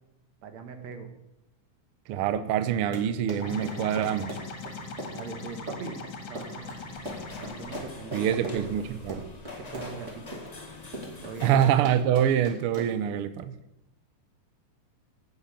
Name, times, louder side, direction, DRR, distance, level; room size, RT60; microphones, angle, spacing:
voice 1, 0.4-1.1 5.1-6.8 7.4-8.7 9.5-10.6 11.2-11.5, right 5 dB, 65° right, 6 dB, 2.5 m, -41 dB
voice 2, 2.1-4.4 8.1-9.3 11.4-13.6, right 10 dB, 85° right, 11 dB, 1.2 m, -25 dB
Run, 2.7-13.1, right 1 dB, 25° right, 2.6 m, -40 dB
sound 1, 3.4-7.8, left 3 dB, 50° left, 2.3 m, -40 dB
sound 2, 6.5-11.8, left 3 dB, 90° left, 0.3 m, -44 dB
11.0 x 9.1 x 7.2 m, 0.86 s
omnidirectional pair, 3.5 m